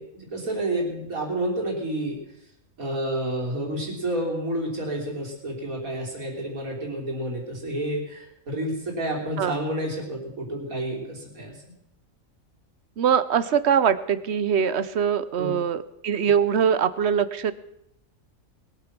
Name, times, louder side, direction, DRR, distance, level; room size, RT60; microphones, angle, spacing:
voice 1, 0.0-2.2 2.8-11.7 15.4-15.5, right 1 dB, 85° right, -1 dB, 4.0 m, -30 dB
voice 2, 13.0-17.5, right 7 dB, 60° right, 15 dB, 0.9 m, -22 dB
21.0 x 8.7 x 6.1 m, 0.80 s
omnidirectional pair, 1.4 m